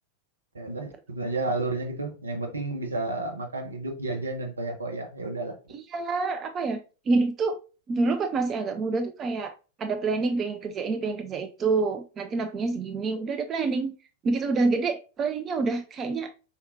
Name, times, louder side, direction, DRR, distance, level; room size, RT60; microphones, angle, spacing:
voice 1, 0.5-5.5, right 2 dB, 75° right, 0.9 m, -31 dB
voice 2, 5.7-6.8 7.1-7.6 7.9-9.5 9.8-13.9 14.2-16.3, right 3 dB, 25° right, 0.4 m, -27 dB
4.3 x 3.5 x 2.7 m
figure-of-eight pair, 90°, 0 cm